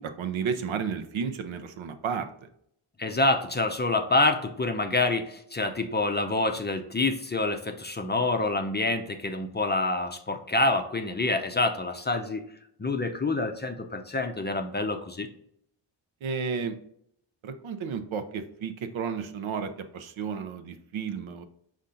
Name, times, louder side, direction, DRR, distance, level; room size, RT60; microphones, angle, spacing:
voice 1, 0.0-2.5 16.2-16.8 17.4-21.4, right 6 dB, 70° right, 8 dB, 0.7 m, -32 dB
voice 2, 3.0-12.4 12.8-15.3, left 2 dB, 20° left, 5 dB, 0.5 m, -27 dB
5.4 x 2.5 x 3.8 m, 0.70 s
cardioid pair, 65°, 49 cm